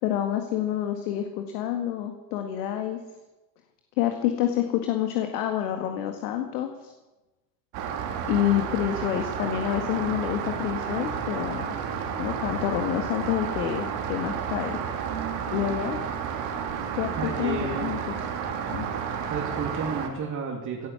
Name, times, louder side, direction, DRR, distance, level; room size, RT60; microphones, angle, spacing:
voice 1, 0.0-3.0 4.0-6.9 8.2-11.8 12.2-14.8 15.5-16.0 16.9-18.0 18.7-18.9, left 11 dB, 70° left, 5 dB, 1.9 m, -28 dB
Rain, 7.7-20.1, right 7 dB, 65° right, 3.0 m, -31 dB
voice 2, 17.1-17.9 19.3-20.9, right 5 dB, 40° right, -1 dB, 3.3 m, -32 dB
17.5 x 11.0 x 7.2 m, 1.1 s
hypercardioid pair, 80°, 48 cm